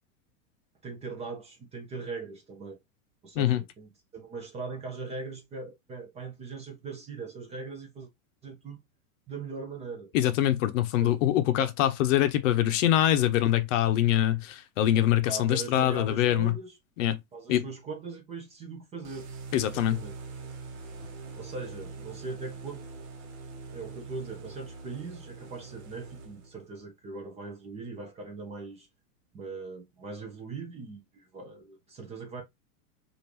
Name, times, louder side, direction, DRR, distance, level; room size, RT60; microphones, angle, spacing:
voice 1, 0.8-2.8 3.2-8.1 8.4-8.8 9.3-10.1 11.0-11.2 15.3-16.8 17.3-19.3 19.7-20.2 21.3-22.9 23.7-28.9 29.3-32.4, right 3 dB, 15° right, 0.5 m, -40 dB
voice 2, 10.1-16.5 17.0-17.2 17.5-17.7 19.5-20.0, left 12 dB, 60° left, 0.7 m, -24 dB
sound 1, 19.0-26.7, right 4 dB, 50° right, 1.1 m, -43 dB
3.4 x 2.5 x 2.8 m
supercardioid pair, 140°, 43 cm